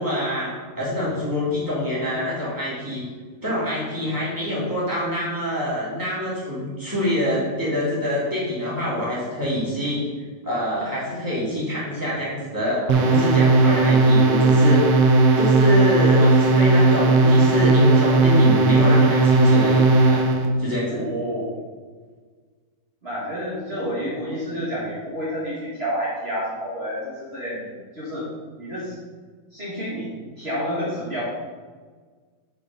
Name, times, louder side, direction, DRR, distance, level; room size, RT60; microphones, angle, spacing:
voice 1, 0.0-3.1 3.4-10.1 10.4-14.9 15.4-20.3 20.6-21.0, left 1 dB, 5° right, -7 dB, 2.1 m, -25 dB
sound 1, 12.9-20.5, right 3 dB, 75° right, 1.4 m, -16 dB
voice 2, 20.9-21.5 23.0-28.3 28.6-29.0 29.5-30.1 30.4-31.2, equal, 40° right, -8 dB, 0.9 m, -29 dB
6.9 x 6.9 x 5.0 m, 1.5 s
omnidirectional pair, 4.3 m